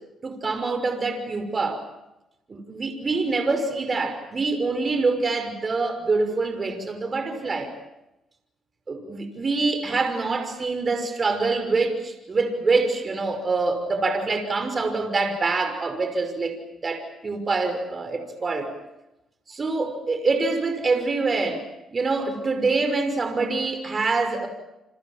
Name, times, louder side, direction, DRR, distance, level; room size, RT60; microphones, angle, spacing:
voice 1, 0.2-1.8 2.5-7.7 8.9-16.6 16.8-18.7 19.5-21.6 21.9-24.5, right 3 dB, 35° right, 6 dB, 5.8 m, -25 dB
28.5 x 25.5 x 7.6 m, 0.93 s
cardioid pair, 90°, 0 cm